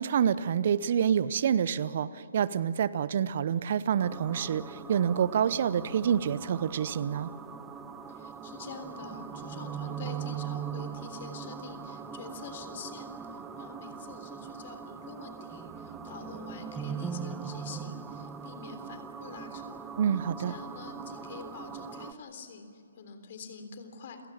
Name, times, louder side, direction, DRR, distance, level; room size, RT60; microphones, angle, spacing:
voice 1, 0.0-7.3 20.0-20.5, right 8 dB, 50° right, 17 dB, 0.7 m, -27 dB
sound 1, 4.0-22.1, right 7 dB, 10° right, 1.0 m, -41 dB
voice 2, 8.1-19.8 20.5-24.2, left 4 dB, 45° left, 7 dB, 3.5 m, -46 dB
29.5 x 17.0 x 7.1 m, 2.9 s
figure-of-eight pair, 140°, 0 cm